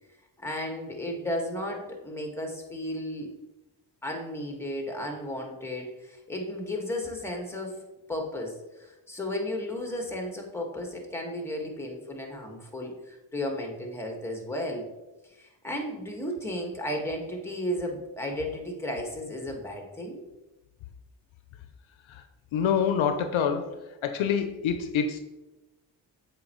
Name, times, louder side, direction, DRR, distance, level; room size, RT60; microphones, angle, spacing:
voice 1, 0.4-3.3 4.0-7.8 8.1-14.9 15.3-20.2, left 1 dB, 5° left, 2 dB, 1.7 m, -34 dB
voice 2, 22.5-23.7 24.0-25.2, left 7 dB, 75° left, 8 dB, 0.6 m, -26 dB
7.5 x 4.5 x 3.0 m, 1.0 s
cardioid pair, 50°, 47 cm